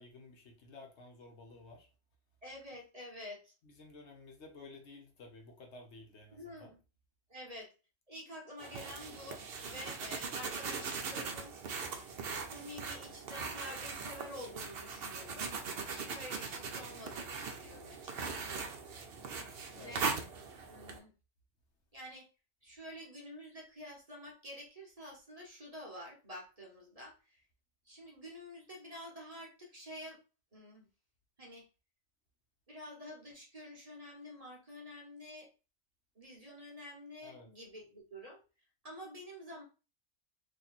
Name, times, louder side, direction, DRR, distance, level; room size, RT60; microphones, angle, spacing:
voice 1, 0.0-1.9 3.6-6.7 19.7-20.0 37.2-37.5, left 3 dB, 65° left, 3 dB, 1.1 m, -53 dB
voice 2, 2.4-3.5 6.3-6.8 7.3-7.7 8.1-11.5 12.5-15.5 15.9-18.7 19.8-20.1 20.7-21.1 21.9-22.3 22.6-27.4 27.9-30.2 30.5-30.9 31.4-31.6 32.7-35.5 36.2-38.4 38.8-39.6, left 1 dB, 30° right, -2 dB, 1.0 m, -49 dB
sound 1, 8.6-21.0, right 5 dB, 60° right, 0.8 m, -40 dB
2.9 x 2.8 x 4.0 m, 0.32 s
omnidirectional pair, 1.3 m